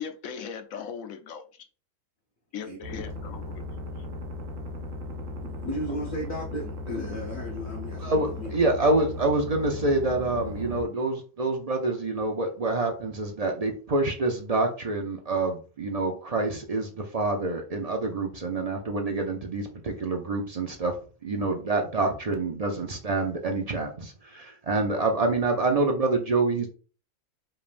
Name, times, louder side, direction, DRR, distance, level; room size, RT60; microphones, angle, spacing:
voice 1, 0.0-1.7 2.5-3.7, left 7 dB, 75° left, 1.1 m, -38 dB
voice 2, 2.6-3.0 5.4-8.5, equal, 40° left, 1.0 m, -35 dB
sound 1, 2.8-10.8, left 2 dB, 70° right, 1.1 m, -37 dB
voice 3, 8.0-20.9 21.2-26.7, right 2 dB, 45° right, 0.5 m, -27 dB
5.1 x 3.3 x 2.5 m
omnidirectional pair, 1.4 m